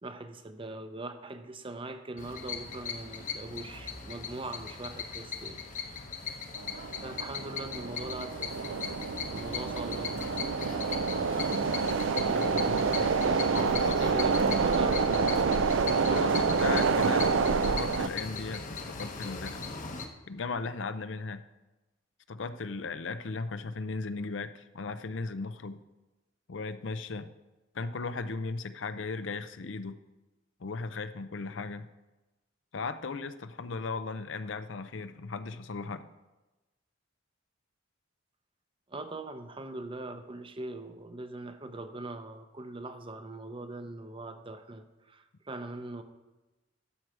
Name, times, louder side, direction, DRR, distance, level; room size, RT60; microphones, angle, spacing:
voice 1, 0.0-5.6 6.1-6.4 7.0-8.7 9.2-10.2 12.2-13.5 14.0-15.6 38.9-46.0, right 2 dB, 25° right, 8 dB, 0.7 m, -41 dB
sound 1, 2.2-20.1, left 5 dB, 40° left, 1.0 m, -39 dB
sound 2, 6.5-18.1, right 5 dB, 80° right, 0.5 m, -28 dB
voice 2, 12.3-12.9 13.4-14.1 16.1-17.3 17.7-19.6 20.3-21.4 22.3-25.8 26.5-27.3 27.7-30.0 30.6-31.9 32.7-36.1, left 4 dB, 70° left, 11 dB, 0.6 m, -37 dB
12.5 x 4.8 x 7.4 m, 1.1 s
head